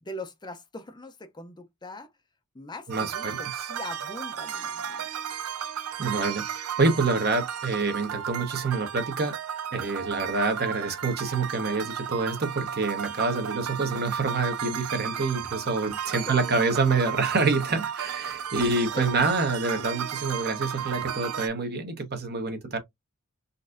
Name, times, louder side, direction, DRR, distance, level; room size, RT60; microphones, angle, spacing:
voice 1, 0.0-2.1 2.5-5.0 15.1-15.2 16.2-16.8 18.9-19.3, left 1 dB, 20° left, 0.5 m, -41 dB
voice 2, 2.9-3.7 6.0-9.3 9.7-22.8, right 3 dB, 50° right, 1.0 m, -27 dB
sound 1, 2.9-21.5, right 8 dB, 85° right, 0.5 m, -34 dB
4.0 x 2.6 x 2.5 m
head